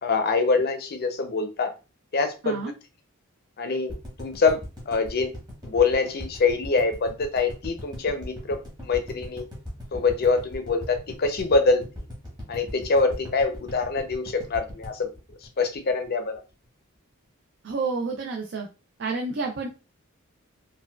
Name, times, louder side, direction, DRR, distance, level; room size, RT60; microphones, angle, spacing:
voice 1, 0.0-1.7 2.1-2.6 3.6-4.6 4.9-5.3 5.6-9.4 9.9-11.9 12.5-15.1 15.6-16.4, left 4 dB, 45° left, 7 dB, 0.5 m, -24 dB
sound 1, 3.9-16.0 16.3-16.4 16.6-16.7, equal, 20° right, 1.1 m, -39 dB
voice 2, 17.6-18.7 19.0-19.7, right 4 dB, 55° right, 1 dB, 0.5 m, -29 dB
4.3 x 2.2 x 2.2 m, 0.32 s
head